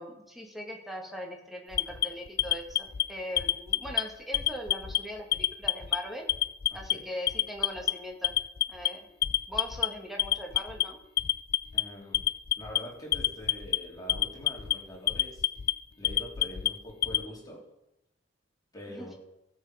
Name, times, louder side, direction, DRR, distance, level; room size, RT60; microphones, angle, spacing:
voice 1, 0.0-6.3 6.7-8.3 8.7-9.1 9.5-11.0 18.9-19.1, equal, ahead, 1 dB, 1.9 m, -40 dB
Alarm, 1.7-3.0 3.4-4.0 4.3-5.0 5.3-6.0 6.3-6.9 7.3-7.9 8.2-8.9 9.2-9.9 10.2-10.8 11.2-11.8 12.1-12.8 13.1-13.8 14.1-14.7 15.1-15.7 16.0-17.2, left 13 dB, 55° left, 0.5 m, -26 dB
voice 2, 6.7-7.0 11.7-12.2 12.6-15.4 16.0-17.6 18.7-19.1, equal, 20° left, -3 dB, 3.5 m, -44 dB
16.5 x 7.2 x 5.1 m, 0.89 s
head